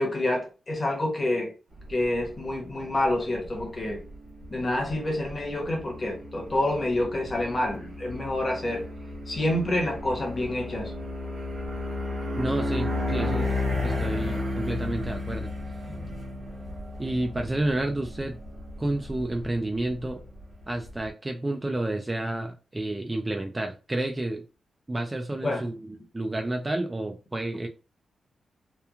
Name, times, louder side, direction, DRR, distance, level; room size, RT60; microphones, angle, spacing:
voice 1, 0.0-1.5 1.9-4.0 4.5-8.8 9.3-10.9 25.4-25.6, left 1 dB, 25° left, 0.8 m, -28 dB
sound 1, 1.8-21.1, left 2 dB, 45° right, 1.1 m, -34 dB
voice 2, 12.4-13.5 13.8-15.5 17.0-18.4 18.8-20.2 20.7-24.4 24.9-27.7, right 1 dB, 15° right, 0.3 m, -30 dB
2.9 x 2.2 x 2.3 m
wide cardioid pair, 155°, 0 cm